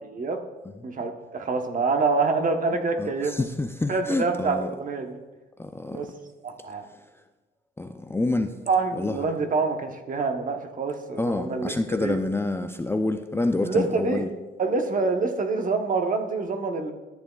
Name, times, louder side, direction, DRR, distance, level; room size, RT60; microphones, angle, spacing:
voice 1, 0.0-0.4 0.8-3.3 3.9-5.2 5.9-6.1 6.4-6.8 8.7-11.7 12.0-12.2 13.6-14.3 14.6-16.9, right 4 dB, 40° right, 5 dB, 0.9 m, -26 dB
voice 2, 3.0-4.7 5.6-6.1 7.8-8.6 9.0-9.3 11.2-14.3, left 2 dB, 10° left, 6 dB, 0.4 m, -27 dB
13.0 x 6.8 x 2.3 m, 1.2 s
cardioid pair, 90°, 20 cm